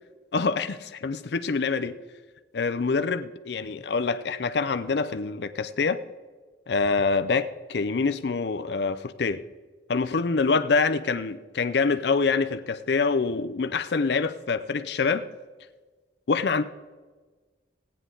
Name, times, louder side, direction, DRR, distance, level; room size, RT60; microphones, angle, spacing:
voice 1, 0.3-2.0 2.5-6.0 6.7-9.4 9.9-15.3 16.3-16.6, left 4 dB, 65° left, 0.5 m, -25 dB
16.5 x 9.6 x 3.8 m
head